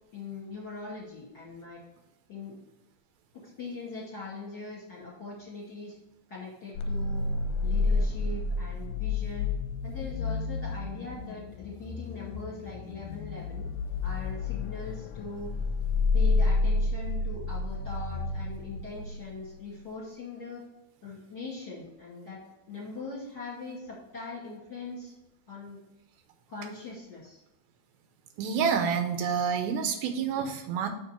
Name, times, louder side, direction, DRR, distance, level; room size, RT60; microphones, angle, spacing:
voice 1, 0.1-1.8 2.3-2.6 3.3-5.9 6.3-7.3 7.6-9.5 9.8-13.7 14.0-15.5 16.1-20.6 21.0-22.4 22.7-25.1 25.5-25.8 26.5-27.4, left 3 dB, 35° left, -5 dB, 2.3 m, -41 dB
sound 1, 6.8-19.4, left 3 dB, 80° left, 2.3 m, -30 dB
voice 2, 28.4-30.9, right 6 dB, 85° right, 6 dB, 2.6 m, -28 dB
6.7 x 5.6 x 4.4 m, 0.91 s
omnidirectional pair, 4.4 m